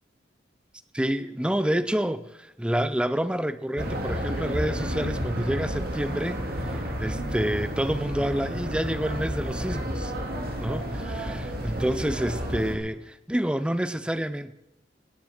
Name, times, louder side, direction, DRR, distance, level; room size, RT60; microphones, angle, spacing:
voice 1, 0.9-10.1 10.6-14.5, equal, 5° right, 13 dB, 0.5 m, -28 dB
sound 1, 3.8-12.8, equal, 55° right, 2.2 m, -31 dB
18.0 x 7.3 x 6.5 m, 0.90 s
head